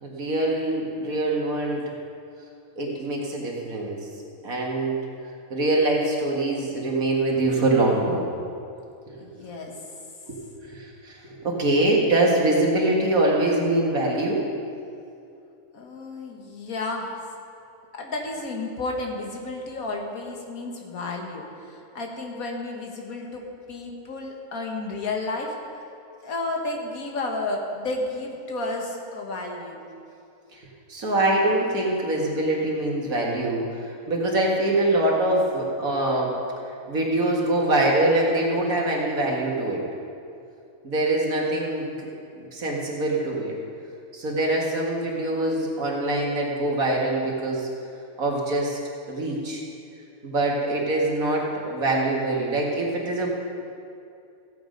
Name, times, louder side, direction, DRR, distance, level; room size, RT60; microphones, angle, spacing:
voice 1, 0.0-1.8 2.8-4.0 4.4-5.1 5.5-8.3 9.1-9.4 10.2-10.4 10.6-14.4 30.5-30.6 30.9-36.3 36.9-39.8 40.8-42.1 42.4-43.5 44.1-47.7 48.2-48.8 49.1-49.6 50.2-53.3, right 2 dB, 80° right, -2 dB, 2.3 m, -24 dB
voice 2, 9.2-9.8 15.7-17.2 17.9-25.8 26.2-29.8, left 2 dB, 80° left, 1 dB, 1.8 m, -32 dB
15.5 x 8.3 x 5.2 m, 2.5 s
omnidirectional pair, 1.5 m